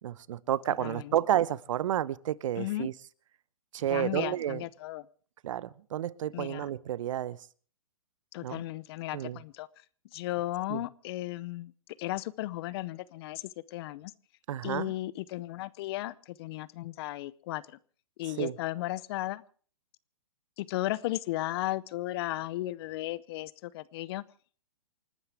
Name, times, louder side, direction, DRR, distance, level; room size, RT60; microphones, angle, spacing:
voice 1, 0.0-2.9 3.7-4.6 5.4-7.4 8.4-8.6 9.1-9.4 10.7-10.8 14.5-14.9 18.3-18.6, right 11 dB, 60° right, 0.8 m, -31 dB
voice 2, 0.8-1.1 2.6-2.9 3.9-5.0 6.3-6.7 8.3-9.7 10.1-11.7 12.0-13.4 13.7-14.1 14.6-17.8 18.2-19.4 20.6-24.2, left 16 dB, 45° left, 0.7 m, -35 dB
28.5 x 12.5 x 3.5 m
hypercardioid pair, 125°, 19 cm